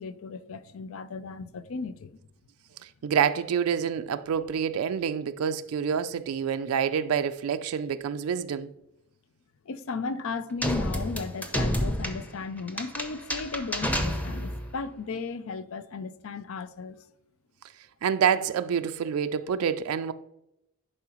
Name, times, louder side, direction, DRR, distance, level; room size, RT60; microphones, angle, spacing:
voice 1, 0.0-2.1 9.7-17.0, left 4 dB, 65° left, 0.5 m, -35 dB
voice 2, 2.8-8.7 18.0-20.1, right 7 dB, 75° right, 0.4 m, -27 dB
sound 1, 10.6-14.7, equal, 5° left, 0.7 m, -30 dB
10.5 x 4.9 x 2.9 m
head